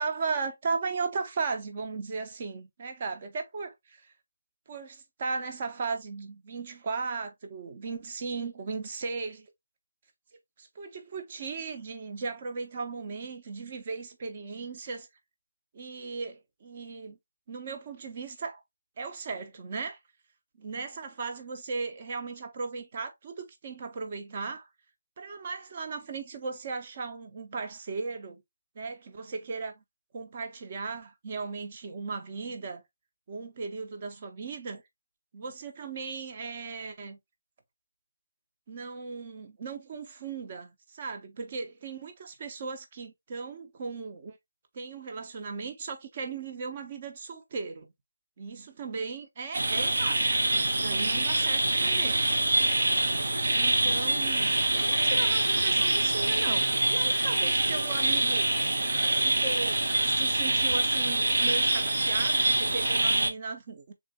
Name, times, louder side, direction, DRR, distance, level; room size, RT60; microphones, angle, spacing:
voice 1, 0.0-4.1 4.7-9.5 10.6-15.1 15.7-17.2 17.5-18.6 19.0-20.0 20.6-24.7 25.2-28.4 28.7-29.8 30.1-32.8 33.3-34.8 35.3-37.2 38.7-44.4 44.7-47.9 48.4-52.3 53.5-58.5 59.1-63.9, right 4 dB, 35° right, 0.8 m, -37 dB
sound 1, 49.5-63.3, right 2 dB, 80° right, 0.9 m, -25 dB
3.7 x 2.5 x 3.7 m
figure-of-eight pair, 165°, 0 cm